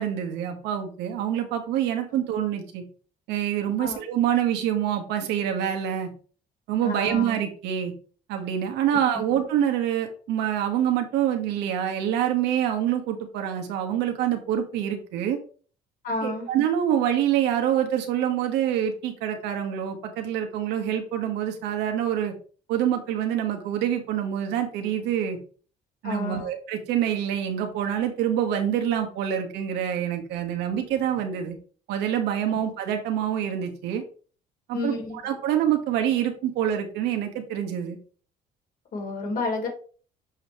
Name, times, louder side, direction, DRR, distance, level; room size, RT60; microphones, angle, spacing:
voice 1, 0.0-2.8 3.3-6.1 6.7-7.9 8.3-15.4 16.2-22.3 22.7-25.4 26.0-31.6 31.9-34.0 34.7-34.9 35.2-38.0, right 10 dB, 90° right, 4 dB, 1.4 m, -26 dB
voice 2, 6.8-7.3 16.0-16.5 26.0-26.5 32.5-32.6 34.7-35.2 38.9-39.7, left 3 dB, 55° left, 0 dB, 3.1 m, -30 dB
7.2 x 5.2 x 3.1 m, 0.41 s
cardioid pair, 110°, 17 cm